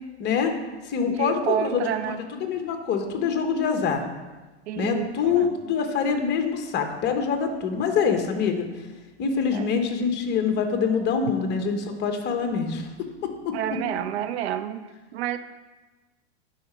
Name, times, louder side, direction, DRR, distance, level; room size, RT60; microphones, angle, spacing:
voice 1, 0.2-0.5 0.8-4.0 4.8-8.7 9.2-12.9 13.2-13.6, left 6 dB, 30° left, 5 dB, 1.1 m, -25 dB
voice 2, 1.1-2.2 4.7-5.5 9.5-9.7 13.5-15.4, right 10 dB, 70° right, 12 dB, 0.6 m, -29 dB
11.0 x 5.0 x 4.4 m, 1.2 s
hypercardioid pair, 120°, 34 cm